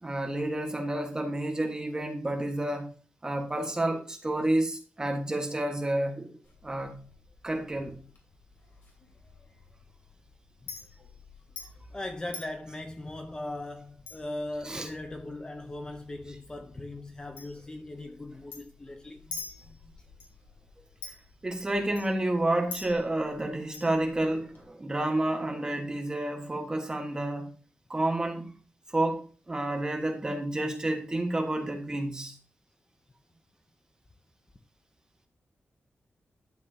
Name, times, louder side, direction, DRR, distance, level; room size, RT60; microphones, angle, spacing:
voice 1, 0.0-2.9 3.2-7.0 7.4-8.0 14.6-14.9 21.4-27.5 27.9-28.5 28.9-32.3, right 1 dB, 20° right, 1.5 m, -30 dB
Chink clink, 6.4-24.6, left 4 dB, 60° left, 3.0 m, -49 dB
voice 2, 11.9-19.2, left 1 dB, 20° left, 0.7 m, -39 dB
11.5 x 7.7 x 2.8 m
wide cardioid pair, 180°, 4 cm